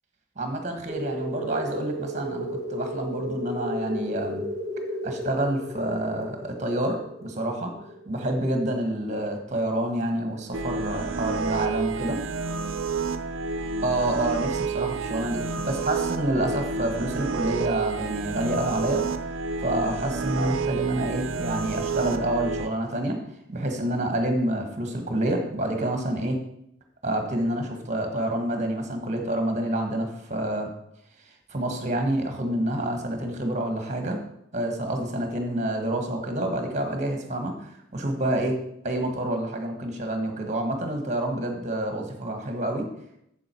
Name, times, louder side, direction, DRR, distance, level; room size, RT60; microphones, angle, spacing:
voice 1, 0.4-4.4 5.0-7.7 8.0-12.2 13.8-19.0 19.6-23.2 23.5-26.4 27.0-30.7 31.5-34.2 34.5-38.6 38.8-42.9, right 1 dB, 35° right, 4 dB, 1.5 m, -28 dB
sound 1, 0.9-9.2, equal, 15° left, 1.6 m, -34 dB
sound 2, 10.5-22.7, right 4 dB, 80° right, 0.7 m, -30 dB
7.6 x 7.5 x 4.5 m, 0.76 s
head